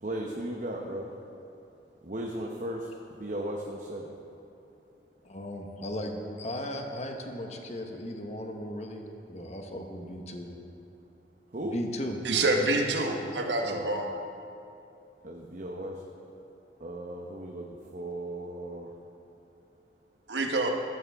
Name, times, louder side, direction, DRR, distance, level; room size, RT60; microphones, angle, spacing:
voice 1, 0.0-1.2 2.0-4.1 11.5-11.8 13.6-13.9 15.2-16.1 16.8-18.9, right 1 dB, 45° right, 0 dB, 0.9 m, -36 dB
voice 2, 5.2-10.5 11.6-12.2, equal, 40° left, 3 dB, 1.2 m, -37 dB
voice 3, 12.2-14.1 20.3-20.7, right 2 dB, 85° right, 2 dB, 1.2 m, -27 dB
14.0 x 13.5 x 3.6 m, 2.8 s
head